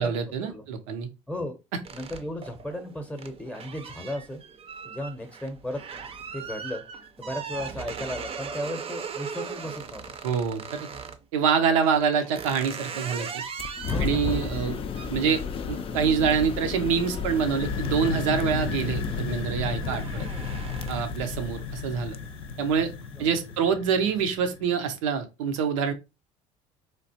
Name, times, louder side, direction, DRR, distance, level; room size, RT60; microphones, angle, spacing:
voice 1, 0.0-1.1 1.7-1.8 10.2-10.8 11.3-13.4 14.0-14.8 15.1-15.4 15.7-20.3 20.9-22.2 22.6-22.9 23.2-25.9, right 6 dB, 90° right, 7 dB, 0.6 m, -26 dB
sound 1, 1.8-11.2 11.8-18.3 18.7-19.1 19.4-21.2, right 6 dB, 35° right, 0.5 m, -39 dB
voice 2, 1.9-4.4 4.8-5.8 6.3-6.8 7.2-10.1 13.9-14.5 23.2-23.4, left 1 dB, 10° left, 5 dB, 0.7 m, -35 dB
sound 2, 13.6-23.6, left 5 dB, 35° left, 0.4 m, -34 dB
sound 3, 17.2-24.8, left 5 dB, 90° left, 0.7 m, -35 dB
3.2 x 2.4 x 2.7 m, 0.26 s
supercardioid pair, 75°, 16 cm